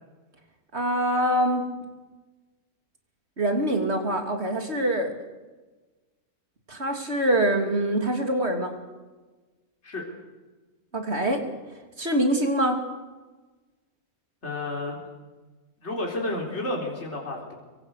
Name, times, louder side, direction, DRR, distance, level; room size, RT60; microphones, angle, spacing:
voice 1, 0.7-1.7 3.4-5.1 6.7-8.7 10.9-11.4 12.0-12.8, right 1 dB, 40° right, 4 dB, 3.5 m, -24 dB
voice 2, 14.4-15.0 15.8-17.5, left 2 dB, 45° left, 0 dB, 4.3 m, -31 dB
25.5 x 23.5 x 6.7 m, 1.2 s
omnidirectional pair, 1.7 m